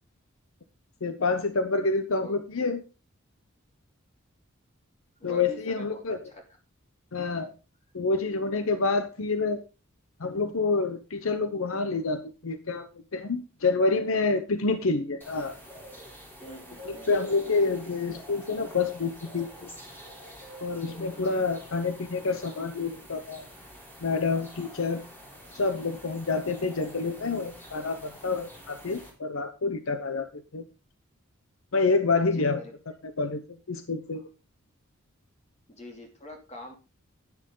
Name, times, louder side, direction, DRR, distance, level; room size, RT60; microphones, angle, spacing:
voice 1, 1.0-2.8 5.2-6.2 7.1-7.5 7.9-9.6 10.2-15.6 16.8-19.7 20.6-23.5 24.0-25.0 25.5-30.6 31.7-32.6 33.2-33.4 33.7-34.2, left 3 dB, 70° left, 9 dB, 0.9 m, -28 dB
voice 2, 5.2-6.4 16.4-17.1 21.1-21.5 32.3-32.7 35.7-36.7, equal, 35° left, 3 dB, 2.8 m, -44 dB
sound 1, 15.2-29.1, equal, 10° left, 3.6 m, -47 dB
10.0 x 9.9 x 3.9 m, 0.32 s
head